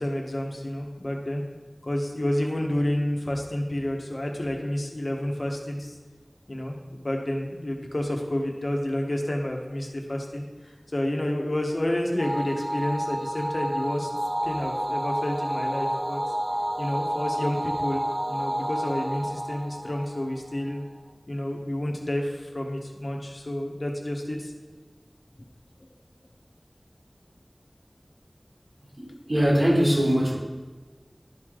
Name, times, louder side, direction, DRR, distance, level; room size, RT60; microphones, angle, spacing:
voice 1, 0.0-1.4 1.8-5.9 6.5-10.4 10.9-14.1 14.4-16.2 16.8-18.0 18.3-20.8 21.3-24.5, left 1 dB, 65° left, 1 dB, 1.2 m, -29 dB
sound 1, 12.2-20.8, equal, 40° right, 0.7 m, -30 dB
voice 2, 29.0-30.4, equal, 65° right, -4 dB, 2.4 m, -22 dB
12.0 x 4.9 x 3.8 m, 1.4 s
wide cardioid pair, 40°, 0 cm